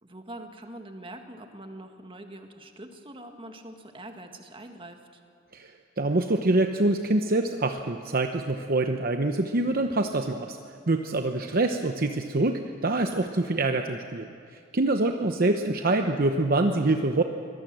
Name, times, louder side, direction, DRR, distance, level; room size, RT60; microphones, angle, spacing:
voice 1, 0.0-5.2 15.0-15.7, right 1 dB, 30° right, 4 dB, 1.8 m, -44 dB
voice 2, 6.0-10.6 10.9-14.3 14.7-17.2, right 2 dB, 50° right, 5 dB, 0.9 m, -25 dB
24.5 x 19.0 x 7.7 m, 2.3 s
head